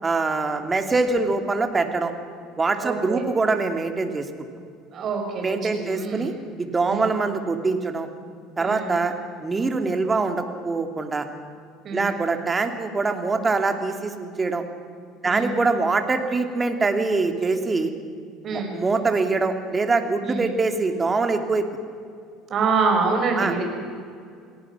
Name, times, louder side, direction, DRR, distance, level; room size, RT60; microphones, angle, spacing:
voice 1, 0.0-2.1 2.6-4.3 5.4-6.3 6.6-8.1 8.6-9.1 9.4-11.2 11.9-14.6 15.2-17.9 18.5-21.6 23.4-23.5, right 3 dB, 25° right, 6 dB, 2.7 m, -24 dB
voice 2, 2.8-3.3 4.9-6.4 6.8-7.2 8.6-8.9 11.8-12.1 15.2-15.6 18.4-18.7 20.2-20.5 22.5-23.6, right 4 dB, 45° right, 3 dB, 5.8 m, -26 dB
29.0 x 18.0 x 6.1 m, 2.3 s
hypercardioid pair, 65°, 0 cm